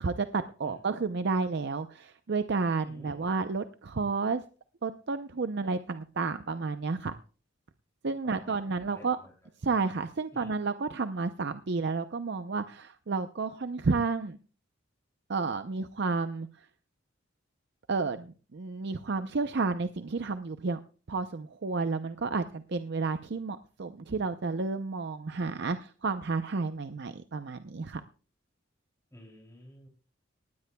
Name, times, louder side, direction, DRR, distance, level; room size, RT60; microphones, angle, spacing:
voice 1, 0.0-4.4 4.8-7.2 8.0-9.2 9.6-14.4 15.3-16.7 17.9-20.8 21.1-28.0, right 4 dB, 60° right, 9 dB, 0.6 m, -31 dB
voice 2, 2.8-3.3 8.2-9.3 10.3-10.5 29.1-29.9, left 1 dB, 15° left, -2 dB, 3.0 m, -53 dB
19.5 x 15.0 x 2.3 m, 0.38 s
head